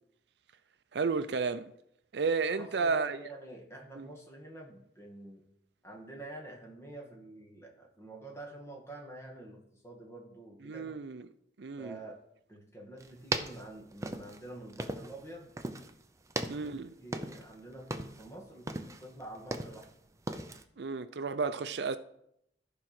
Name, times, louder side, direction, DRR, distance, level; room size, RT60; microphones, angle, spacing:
voice 1, 0.9-1.7 2.1-3.2 4.0-4.1 10.7-11.3 11.6-12.0 16.5-16.9 20.8-22.0, right 4 dB, 65° right, 0.5 m, -32 dB
voice 2, 2.6-5.4 5.8-10.9 11.8-12.2 12.5-15.6 16.6-19.9, right 2 dB, 15° left, 2.0 m, -48 dB
sound 1, 13.0-15.3 15.6-16.0 16.3-17.6 17.8-18.3 18.7-19.9 20.3-20.6, right 2 dB, 15° right, 0.6 m, -37 dB
14.0 x 4.8 x 6.0 m
head